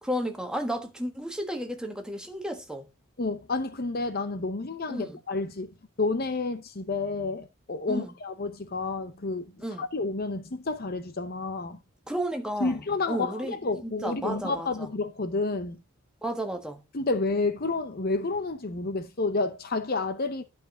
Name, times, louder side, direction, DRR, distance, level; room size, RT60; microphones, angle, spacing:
voice 1, 0.0-2.9 4.9-5.2 7.9-8.1 9.6-9.9 12.1-13.6 13.8-14.9 16.2-16.8, equal, 5° right, 1.4 m, -33 dB
voice 2, 3.2-5.7 6.0-9.5 9.8-11.8 12.6-15.8 16.9-20.4, left 3 dB, 45° left, 0.7 m, -30 dB
11.5 x 5.1 x 3.7 m
head